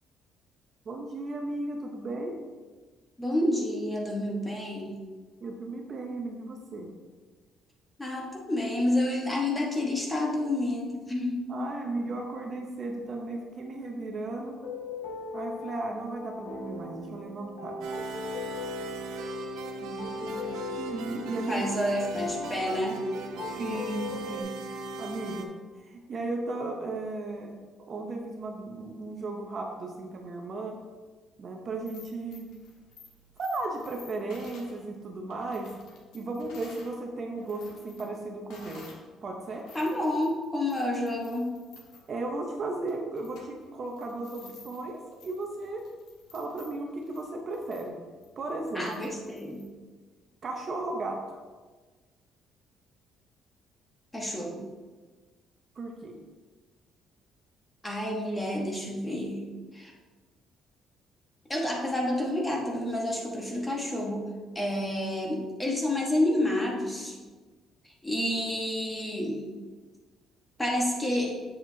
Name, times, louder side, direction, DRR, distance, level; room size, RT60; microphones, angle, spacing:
voice 1, 0.9-2.4 5.4-6.9 11.5-14.6 15.3-17.8 19.8-20.1 20.4-20.5 20.8-21.7 23.4-30.8 31.4-32.5 33.4-35.7 36.1-38.9 39.2-39.6 42.1-45.8 46.3-48.0 48.4-48.9 50.4-51.4 55.8-56.2, right 2 dB, 35° right, 2 dB, 0.7 m, -35 dB
voice 2, 3.2-4.9 8.0-11.6 20.3-20.4 21.5-23.0 39.7-41.5 44.4-44.5 48.7-49.6 54.1-54.7 57.8-59.4 59.7-59.9 61.5-64.3 64.5-67.2 68.0-69.4 70.6-71.3, left 1 dB, 10° left, -1 dB, 1.1 m, -29 dB
sound 1, 14.4-24.4, left 4 dB, 65° left, 1.3 m, -39 dB
sound 2, 17.8-25.4, right 3 dB, 90° right, 0.7 m, -39 dB
sound 3, 31.7-36.9 37.3-39.1 39.4-49.7, left 3 dB, 90° left, 1.5 m, -54 dB
7.7 x 7.2 x 2.7 m, 1.4 s
cardioid pair, 170°, 0 cm